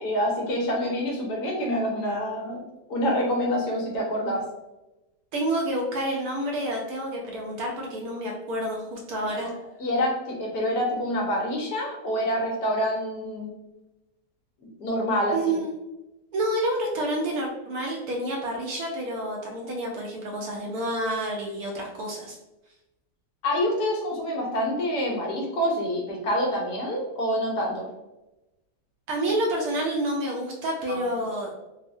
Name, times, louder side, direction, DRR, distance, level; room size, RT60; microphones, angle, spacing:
voice 1, 0.0-4.4 9.4-9.5 9.8-13.5 14.8-15.4 23.4-27.9 30.9-31.0, equal, 75° left, -2 dB, 1.3 m, -27 dB
voice 2, 5.3-9.5 15.3-15.8 16.3-22.4 29.1-31.5, right 1 dB, 70° right, -1 dB, 1.0 m, -29 dB
3.6 x 2.0 x 2.5 m, 0.96 s
omnidirectional pair, 1.8 m